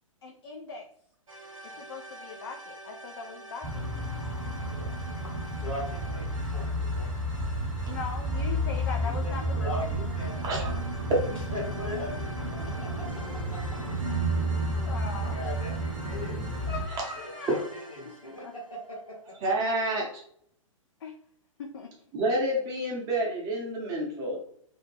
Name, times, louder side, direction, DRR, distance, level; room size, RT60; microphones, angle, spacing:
voice 1, 0.2-0.9 1.6-3.9 4.9-5.2 7.9-9.9 14.7-15.4 16.7-17.6 18.0-18.2 18.4-18.5 21.0-21.2 21.6-21.9, left 5 dB, 50° left, 2 dB, 0.4 m, -40 dB
sound 1, 1.3-19.1, right 2 dB, 70° right, 0.6 m, -47 dB
sound 2, 3.6-16.8, right 1 dB, 5° left, 0.8 m, -31 dB
voice 2, 4.5-4.9 5.2-5.3 5.6-7.1 9.0-10.9 11.3-13.0 13.5-13.8 15.1-16.4 17.2-17.6 17.9-19.3, left 1 dB, 75° left, -3 dB, 1.3 m, -40 dB
voice 3, 19.4-20.2 22.1-24.4, right 1 dB, 20° right, -2 dB, 0.7 m, -29 dB
2.6 x 2.0 x 3.1 m, 0.65 s
figure-of-eight pair, 115°, 17 cm